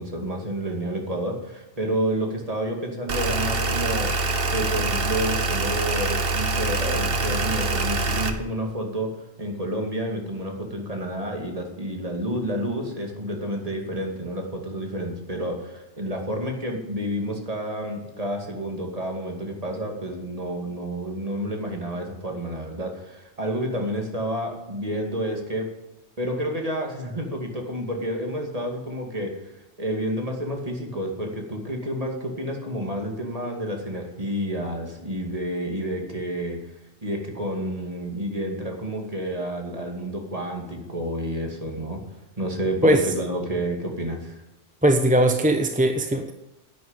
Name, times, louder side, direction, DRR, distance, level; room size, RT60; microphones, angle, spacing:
voice 1, 0.0-4.1 4.5-9.1 9.4-25.7 26.2-29.3 29.8-36.6 37.0-42.0 42.4-44.4, equal, 30° right, 2 dB, 2.5 m, -29 dB
sound 1, 3.1-8.3, right 3 dB, 55° right, 1.4 m, -25 dB
voice 2, 44.8-46.3, right 1 dB, 10° right, 5 dB, 0.8 m, -19 dB
11.0 x 9.4 x 8.9 m, 0.98 s
omnidirectional pair, 1.2 m